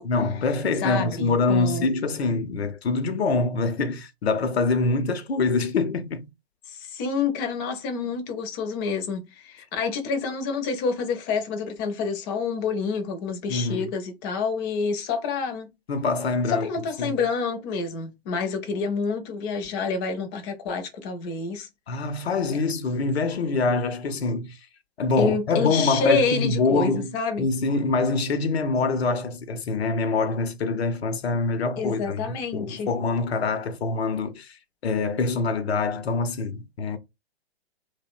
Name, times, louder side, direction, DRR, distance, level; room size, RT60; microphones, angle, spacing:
voice 1, 0.0-6.3 13.5-13.9 15.9-16.7 17.0-17.2 21.9-24.6 25.0-37.0, left 3 dB, 80° left, 0.6 m, -25 dB
voice 2, 0.8-1.9 6.7-15.7 16.5-21.7 25.2-27.5 31.8-32.9, left 5 dB, 25° left, 0.4 m, -28 dB
2.6 x 2.1 x 2.4 m
figure-of-eight pair, 120°, 31 cm